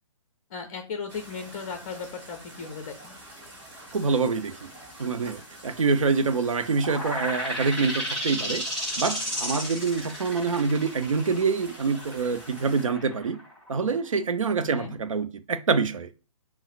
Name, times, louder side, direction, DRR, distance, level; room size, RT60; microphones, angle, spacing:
voice 1, 0.5-3.1 14.6-14.9, left 5 dB, 30° left, 0.5 m, -36 dB
sound 1, 1.1-12.9, right 1 dB, 25° right, 1.7 m, -47 dB
voice 2, 3.9-4.7 5.0-8.6 9.0-13.4 13.7-16.1, right 4 dB, 70° right, 0.5 m, -26 dB
sound 2, 6.8-14.1, equal, 5° left, 1.8 m, -33 dB
5.4 x 2.0 x 2.5 m
figure-of-eight pair, 130°, 18 cm